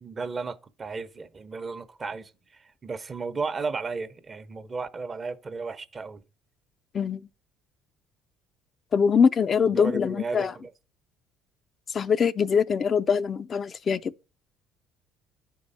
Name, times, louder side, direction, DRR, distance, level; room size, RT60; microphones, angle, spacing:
voice 1, 0.0-6.2 9.5-10.7, right 4 dB, 35° right, 0.9 m, -34 dB
voice 2, 8.9-10.5 11.9-14.1, left 6 dB, 45° left, 0.4 m, -23 dB
9.6 x 4.6 x 5.5 m
hypercardioid pair, 70°, 0 cm